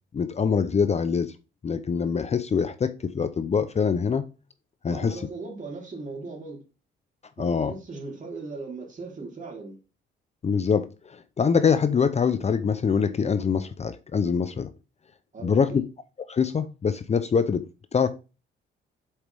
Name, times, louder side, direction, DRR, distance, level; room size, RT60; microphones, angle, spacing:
voice 1, 0.1-1.3 1.6-4.2 4.8-5.2 7.4-7.7 10.4-14.7 15.4-15.7 16.3-17.7 17.9-18.1, left 6 dB, 35° left, 0.6 m, -24 dB
voice 2, 4.8-6.6 7.4-9.8 15.3-15.8, right 3 dB, 40° right, 3.4 m, -38 dB
7.3 x 4.9 x 3.4 m
cardioid pair, 90°, 20 cm